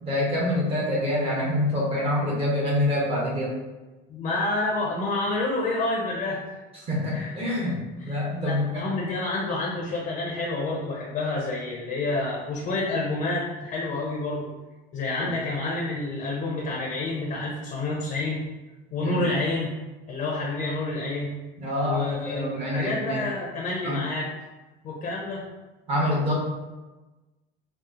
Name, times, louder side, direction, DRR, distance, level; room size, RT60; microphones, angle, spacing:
voice 1, 0.0-3.6 6.8-8.8 15.2-15.3 19.0-19.1 21.6-23.2 23.8-24.0 25.9-26.4, left 1 dB, 30° right, -5 dB, 1.1 m, -26 dB
voice 2, 4.1-6.4 7.1-7.4 8.0-14.4 14.9-18.4 18.9-19.7 20.1-21.3 21.8-24.3 24.8-25.4, left 2 dB, 35° left, -3 dB, 0.6 m, -28 dB
4.2 x 2.0 x 2.5 m, 1.1 s
cardioid pair, 140°, 21 cm